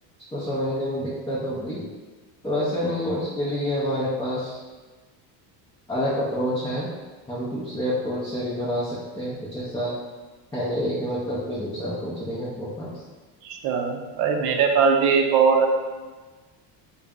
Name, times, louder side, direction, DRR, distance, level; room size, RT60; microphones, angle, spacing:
voice 1, 0.3-1.9 2.4-4.6 5.9-6.9 7.3-9.9 10.5-13.0, equal, 10° left, -8 dB, 0.4 m, -28 dB
voice 2, 13.4-15.7, right 6 dB, 65° right, 3 dB, 0.6 m, -20 dB
3.9 x 2.2 x 3.5 m, 1.3 s
cardioid pair, 150°, 45 cm